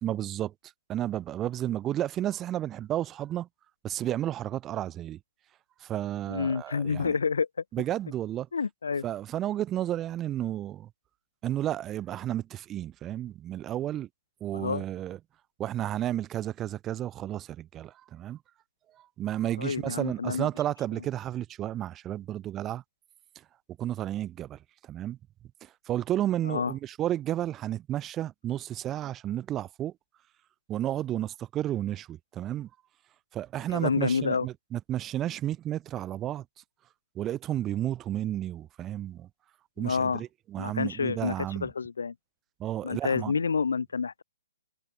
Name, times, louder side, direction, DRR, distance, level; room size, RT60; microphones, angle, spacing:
voice 1, 0.0-0.5 0.9-3.5 3.8-5.2 5.8-7.2 7.7-8.5 9.0-10.9 11.4-14.1 14.4-15.2 15.6-18.4 18.9-22.8 23.3-23.4 23.8-25.2 25.6-29.9 30.7-32.7 33.3-36.5 37.1-39.3 39.8-41.7 42.6-43.4, right 12 dB, 20° right, 0.8 m, -32 dB
voice 2, 6.3-7.5 8.5-9.0 14.5-14.8 19.6-20.5 26.4-26.7 33.7-34.5 39.8-40.2 40.6-41.3 41.6-42.1 42.8-44.2, left 5 dB, 75° left, 0.3 m, -28 dB
hypercardioid pair, 145°, 0 cm